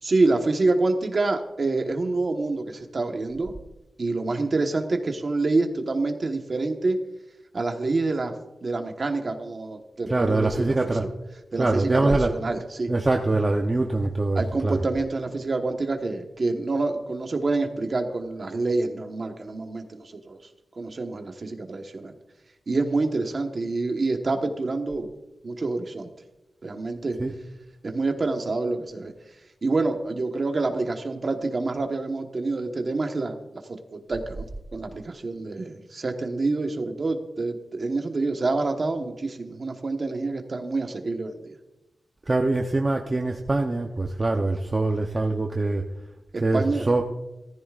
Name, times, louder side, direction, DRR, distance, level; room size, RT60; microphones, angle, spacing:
voice 1, 0.0-3.5 4.0-7.0 7.5-8.3 8.6-11.1 11.5-12.9 14.3-20.4 20.8-22.1 22.7-25.1 25.4-26.1 26.6-27.2 27.8-29.1 29.6-41.5 46.3-46.9, right 3 dB, 40° right, 4 dB, 1.2 m, -27 dB
voice 2, 10.1-11.0 11.6-12.3 12.9-14.8 27.2-27.3 42.3-45.8 46.4-47.0, right 2 dB, 25° right, 2 dB, 0.7 m, -23 dB
19.0 x 14.0 x 2.5 m, 0.99 s
wide cardioid pair, 175°, 0 cm